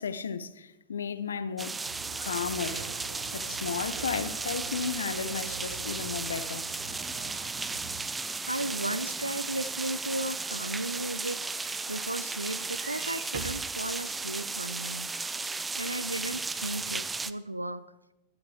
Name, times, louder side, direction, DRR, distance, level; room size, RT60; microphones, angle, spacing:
voice 1, 0.0-1.7 2.2-2.8 3.3-6.7, left 6 dB, 70° left, 0.6 m, -34 dB
sound 1, 1.6-17.3, right 4 dB, 10° right, 0.5 m, -35 dB
sound 2, 1.8-8.0, right 6 dB, 65° right, 1.2 m, -45 dB
sound 3, 8.3-13.7 14.4-14.5 14.8-14.9, right 7 dB, 45° right, 1.5 m, -47 dB
voice 2, 8.5-15.1 15.4-17.8, right 1 dB, 85° right, 0.4 m, -35 dB
16.0 x 11.5 x 3.3 m
figure-of-eight pair, 90°, 0 cm